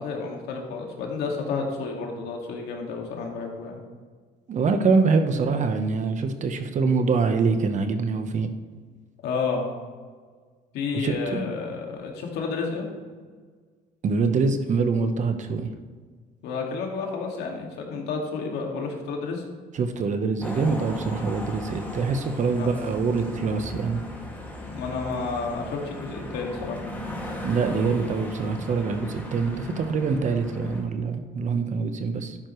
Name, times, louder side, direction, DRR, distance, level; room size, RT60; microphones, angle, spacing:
voice 1, 0.0-3.8 9.2-9.7 10.7-12.9 16.4-19.4 22.6-22.7 24.7-26.8, left 4 dB, 80° left, 1 dB, 2.2 m, -30 dB
voice 2, 4.5-8.5 10.9-11.5 14.0-15.7 19.8-24.0 27.4-32.4, right 4 dB, 45° right, 8 dB, 1.0 m, -24 dB
sound 1, 20.4-30.8, left 1 dB, 10° left, 2.2 m, -37 dB
12.5 x 9.9 x 3.2 m, 1.5 s
cardioid pair, 110°, 17 cm